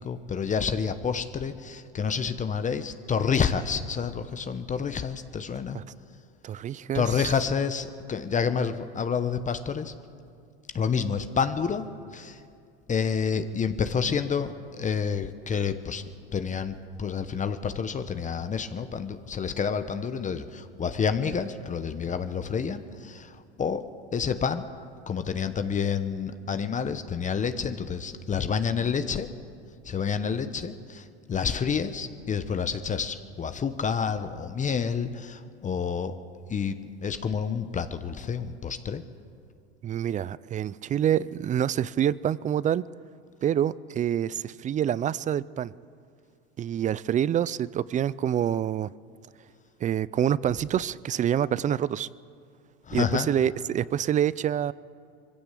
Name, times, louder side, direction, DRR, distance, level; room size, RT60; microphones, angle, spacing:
voice 1, 0.0-5.8 6.9-9.9 10.7-11.8 12.1-12.4 12.9-16.0 16.3-23.8 24.1-24.7 25.1-29.3 29.8-36.2 36.5-39.0 52.9-53.3, left 6 dB, 25° left, 1.0 m, -29 dB
voice 2, 6.4-7.3 39.8-42.8 43.4-45.7 46.6-48.9 49.8-52.1 52.9-54.7, right 10 dB, 25° right, 0.4 m, -26 dB
22.0 x 15.5 x 8.4 m
supercardioid pair, 105°, 31 cm